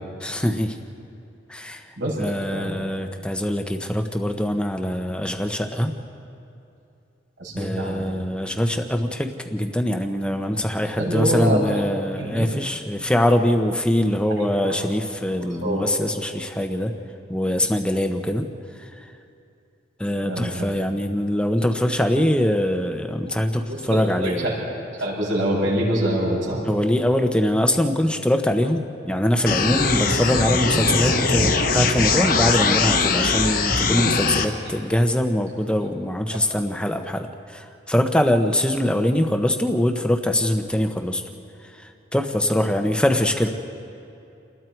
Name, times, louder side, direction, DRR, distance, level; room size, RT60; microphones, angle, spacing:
voice 1, 0.2-0.8 1.5-1.8 2.2-5.9 7.6-16.9 17.3-18.5 18.8-19.0 20.0-24.5 26.6-41.2 41.8-43.5, left 1 dB, 5° left, 5 dB, 1.0 m, -23 dB
voice 2, 7.4-8.0 11.0-11.8 12.2-12.5 14.4-14.9 15.6-15.9 20.2-20.5 23.7-24.5 25.0-26.6, right 1 dB, 70° right, -4 dB, 7.2 m, -25 dB
sound 1, 29.5-34.5, left 4 dB, 45° left, 1.2 m, -21 dB
29.5 x 20.5 x 4.7 m, 2.7 s
head